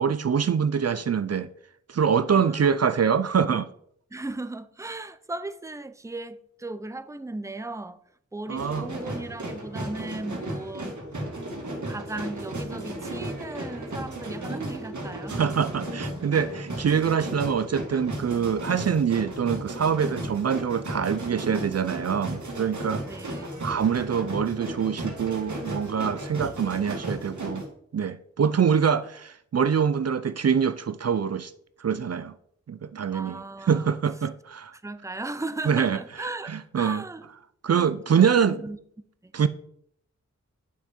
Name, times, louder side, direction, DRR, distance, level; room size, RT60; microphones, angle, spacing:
voice 1, 0.0-1.5 1.9-3.7 8.5-8.9 15.3-23.0 23.6-27.7 27.9-31.5 31.8-32.3 32.7-33.4 33.7-34.7 35.7-36.0 36.5-37.0 37.6-38.6 39.3-39.5, right 7 dB, 55° right, 0.4 m, -24 dB
voice 2, 2.3-2.7 4.1-8.0 8.3-11.0 11.8-15.4 23.0-23.7 33.1-33.9 34.7-37.3 37.7-38.8 39.2-39.5, right 2 dB, 10° right, 0.6 m, -37 dB
sound 1, 8.6-27.7, right 1 dB, 75° right, 2.0 m, -35 dB
9.3 x 5.9 x 4.3 m
wide cardioid pair, 65°, 30 cm